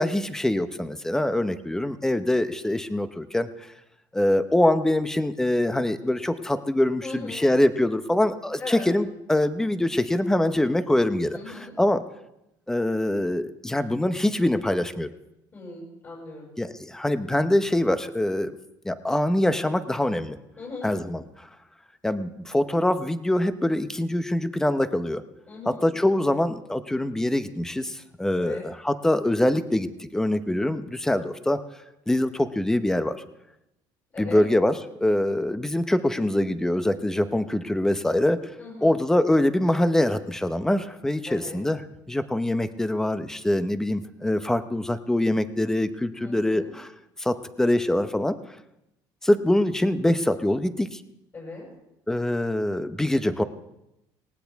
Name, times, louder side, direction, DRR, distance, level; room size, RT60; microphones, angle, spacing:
voice 1, 0.0-3.5 4.1-12.0 12.7-15.1 16.6-18.5 18.8-20.4 20.8-21.5 22.0-25.2 25.7-31.6 32.1-33.2 34.2-38.4 38.8-41.8 42.1-46.9 47.2-48.4 49.2-51.0 52.1-53.4, left 1 dB, 5° left, 11 dB, 0.8 m, -24 dB
voice 2, 7.0-7.5 8.6-8.9 11.3-11.7 15.5-16.5 20.6-20.9 25.5-25.8 28.4-28.6 34.1-34.4 38.6-39.0 41.3-41.6 46.2-46.7 51.3-51.6, left 3 dB, 30° left, -4 dB, 6.3 m, -38 dB
18.5 x 18.5 x 3.5 m, 0.88 s
cardioid pair, 140°, 9 cm